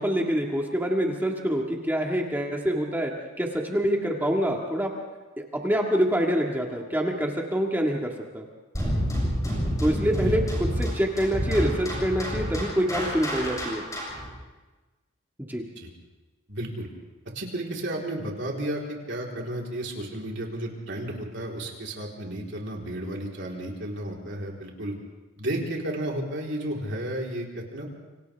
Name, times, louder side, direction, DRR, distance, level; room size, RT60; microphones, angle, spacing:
voice 1, 0.0-3.1 3.4-4.9 5.4-8.5 9.8-10.4 10.8-13.8 15.5-15.6, equal, 10° right, 0 dB, 1.8 m, -26 dB
sound 1, 8.7-14.3, equal, 15° left, 7.2 m, -28 dB
voice 2, 16.5-16.9 17.3-24.9 25.4-27.9, right 1 dB, 55° right, -1 dB, 3.9 m, -33 dB
29.0 x 26.0 x 3.5 m, 1.2 s
head